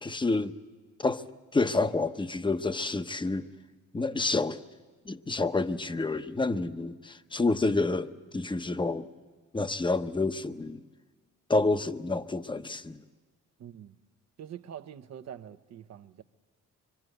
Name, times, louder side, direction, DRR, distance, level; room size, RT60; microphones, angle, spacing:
voice 1, 0.0-0.5 1.0-1.2 1.5-3.5 3.9-4.6 5.0-9.1 9.5-10.8 11.5-13.0, left 3 dB, 15° left, 0.9 m, -28 dB
voice 2, 13.6-13.9 14.4-16.2, right 9 dB, 60° right, 1.0 m, -45 dB
25.5 x 24.0 x 8.0 m
cardioid pair, 90°, 30 cm